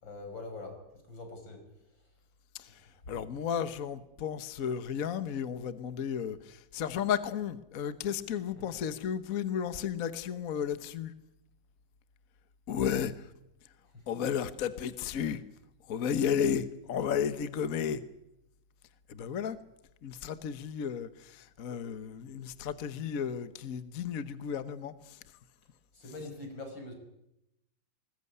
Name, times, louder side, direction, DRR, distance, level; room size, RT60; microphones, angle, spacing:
voice 1, 0.0-0.8 1.1-1.6 2.7-2.8 8.6-8.7 13.9-14.0 25.9-26.9, left 2 dB, 75° left, 5 dB, 6.5 m, -43 dB
voice 2, 2.5-11.1 12.7-13.3 14.1-15.4 15.9-18.0 19.1-19.6 20.0-25.2, left 8 dB, 50° left, 12 dB, 1.4 m, -33 dB
21.0 x 20.5 x 9.7 m, 0.85 s
omnidirectional pair, 2.1 m